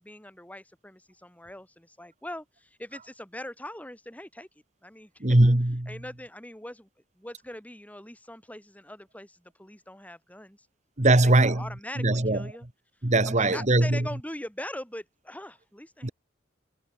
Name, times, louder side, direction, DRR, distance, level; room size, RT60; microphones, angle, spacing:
voice 1, 0.0-4.5 4.8-5.1 5.9-6.9 7.2-10.7 11.1-12.7 13.3-16.1, left 1 dB, 10° left, 6.5 m, -41 dB
voice 2, 5.2-5.9 11.0-11.7 12.0-12.5 13.0-14.1 16.0-16.1, right 2 dB, 35° right, 1.6 m, -21 dB
head